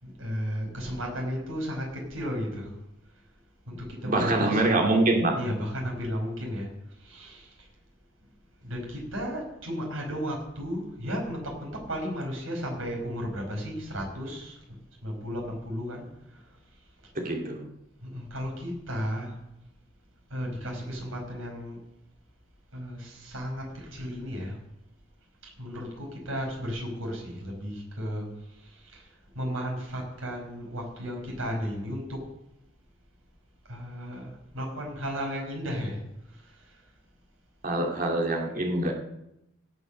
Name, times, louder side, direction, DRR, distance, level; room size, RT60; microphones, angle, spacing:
voice 1, 0.0-2.8 3.7-5.0 5.3-6.7 7.0-7.7 8.6-14.6 15.0-16.5 18.0-19.4 20.3-21.8 22.7-24.6 25.6-29.1 29.4-32.2 33.7-36.0 36.3-36.8, equal, 85° right, -1 dB, 5.4 m, -34 dB
voice 2, 4.0-5.4 17.2-17.7 37.6-38.9, right 2 dB, 40° right, 1 dB, 2.3 m, -25 dB
18.0 x 6.8 x 6.4 m, 0.84 s
head